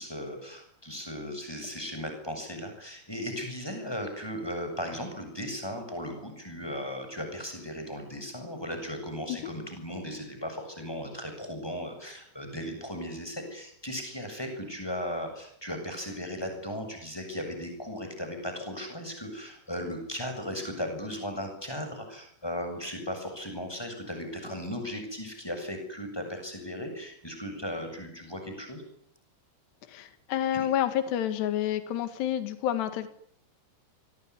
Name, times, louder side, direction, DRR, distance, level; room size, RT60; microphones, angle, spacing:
voice 1, 0.0-28.8 30.5-30.7, equal, 5° left, 5 dB, 7.4 m, -37 dB
voice 2, 29.9-33.1, left 11 dB, 70° left, 11 dB, 3.9 m, -29 dB
25.5 x 21.0 x 9.8 m, 0.69 s
omnidirectional pair, 5.1 m